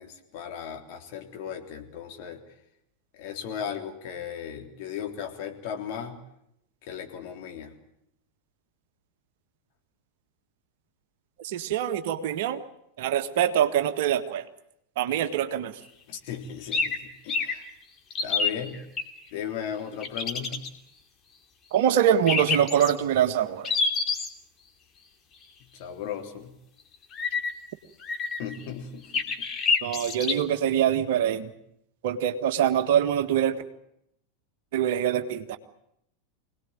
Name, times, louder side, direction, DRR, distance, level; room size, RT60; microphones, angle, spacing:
voice 1, 0.0-2.4 3.1-6.2 6.8-7.7 16.1-17.6 18.2-18.8 19.3-20.7 25.8-26.5 28.4-29.2, left 8 dB, 50° left, 3 dB, 3.5 m, -36 dB
voice 2, 11.4-12.6 13.0-14.4 15.0-15.7 21.7-23.7 29.8-31.5 32.0-33.6 34.7-35.6, right 10 dB, 55° right, 9 dB, 1.7 m, -24 dB
sound 1, 16.7-17.0 17.3-17.5 18.1-19.0 20.0-20.7 22.3-22.9 23.6-24.3 27.1-27.5 28.0-28.6 29.1-30.3, left 4 dB, 30° left, 3.0 m, -26 dB
25.5 x 18.5 x 9.0 m, 0.77 s
figure-of-eight pair, 85°, 0 cm